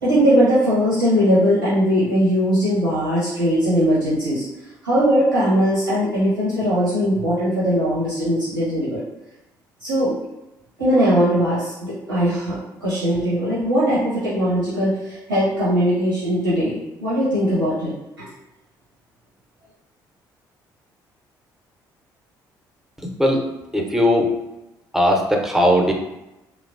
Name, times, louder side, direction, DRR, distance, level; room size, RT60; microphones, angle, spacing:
voice 1, 0.0-4.4 4.8-9.0 9.8-10.1 10.8-18.3, equal, 85° right, -10 dB, 0.8 m, -20 dB
voice 2, 23.0-24.3 24.9-25.9, equal, 5° right, 1 dB, 0.6 m, -19 dB
3.0 x 2.2 x 2.5 m, 0.96 s
figure-of-eight pair, 45°, 11 cm